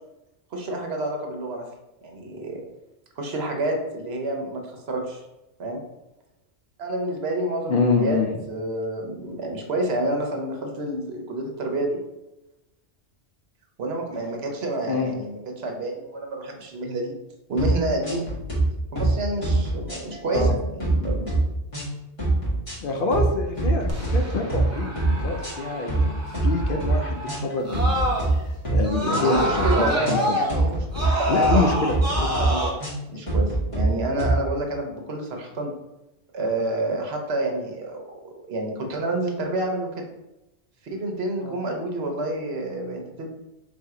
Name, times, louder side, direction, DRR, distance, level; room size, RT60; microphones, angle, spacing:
voice 1, 0.5-1.6 2.0-2.6 3.2-5.2 5.6-5.8 6.8-8.2 8.5-12.0 13.8-17.1 17.5-18.2 18.9-21.3 29.0-30.9 31.2-31.7 32.4-32.7 33.1-35.7 36.3-40.0 40.9-43.3, right 2 dB, 65° right, 2 dB, 1.0 m, -28 dB
voice 2, 7.7-8.3 14.9-15.1 20.3-20.5 22.8-24.9 25.2-30.4 31.3-32.4 41.4-41.6, left 3 dB, 60° left, 3 dB, 0.7 m, -26 dB
sound 1, 17.6-17.8 18.0-18.6 19.0-19.1 19.4-20.5 20.8-21.4 21.7-21.9 22.2-22.7 23.1-23.3 23.6-24.1 24.5-24.7 25.0-25.5 25.9-26.1 26.3-26.9 27.3-28.3 28.6-28.8 29.1-29.7 30.0-30.2 30.5-31.1 31.4-31.6 31.9-32.5 32.8-33.0 33.3-33.8 34.2-34.4, right 2 dB, 30° left, 1.5 m, -24 dB
Screaming, 23.9-28.5 28.8-32.7, equal, 15° right, 0.8 m, -28 dB
3.5 x 2.7 x 4.7 m, 0.96 s
omnidirectional pair, 1.1 m